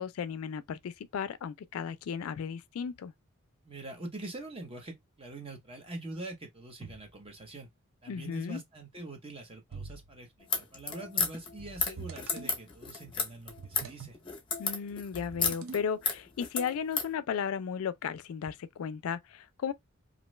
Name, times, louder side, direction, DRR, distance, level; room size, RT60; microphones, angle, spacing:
voice 1, 0.0-3.1 8.1-8.6 14.6-19.7, left 7 dB, 75° left, 0.3 m, -35 dB
voice 2, 3.6-7.7 8.0-14.2, right 2 dB, 25° right, 0.7 m, -44 dB
sound 1, 9.7-10.2 11.6-12.6 13.5-14.2 15.1-16.0, right 5 dB, 60° right, 0.4 m, -45 dB
sound 2, 10.4-17.1, left 5 dB, 20° left, 0.6 m, -33 dB
2.5 x 2.2 x 3.0 m
head